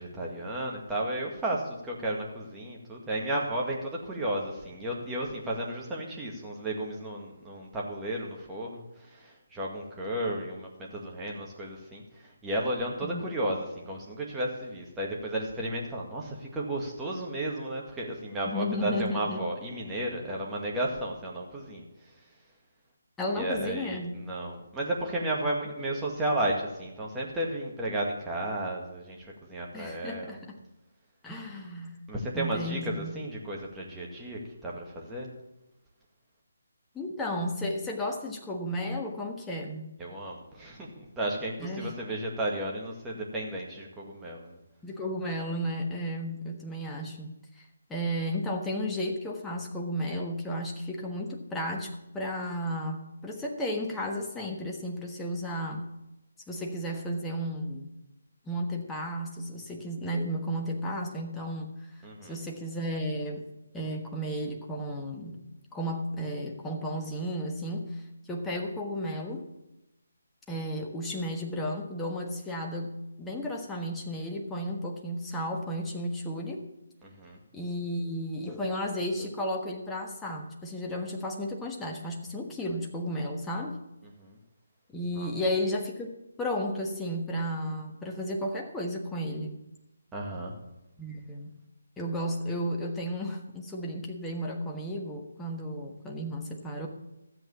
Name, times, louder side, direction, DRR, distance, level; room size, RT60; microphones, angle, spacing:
voice 1, 0.0-21.8 23.4-30.4 32.1-35.3 40.0-44.6 62.0-62.4 77.0-77.4 84.2-84.4 85.1-85.3 90.1-90.5, right 1 dB, 10° right, -3 dB, 2.0 m, -33 dB
voice 2, 18.5-19.4 23.2-24.1 29.7-30.6 31.2-32.1 32.3-33.2 36.9-39.9 41.6-41.9 44.8-47.6 47.9-55.8 56.5-57.9 58.5-61.9 62.2-63.5 63.7-65.4 65.7-68.0 68.3-69.5 70.5-76.6 77.5-83.8 84.9-89.6 91.0-91.5 92.0-96.9, equal, 10° left, 0 dB, 1.3 m, -33 dB
12.5 x 8.0 x 7.1 m, 0.93 s
figure-of-eight pair, 145°, 0 cm